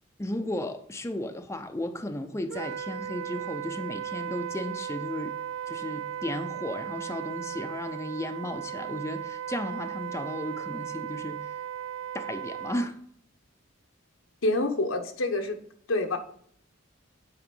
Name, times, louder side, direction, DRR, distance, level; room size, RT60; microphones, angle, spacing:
voice 1, 0.2-5.3 5.7-11.5 12.1-13.0, left 1 dB, 15° left, 0.5 m, -34 dB
Wind instrument woodwind instrument, 2.5-12.9, right 9 dB, 85° right, 0.3 m, -36 dB
voice 2, 14.4-15.6 15.9-16.2, left 2 dB, 85° left, 1.1 m, -27 dB
8.7 x 5.0 x 5.2 m
head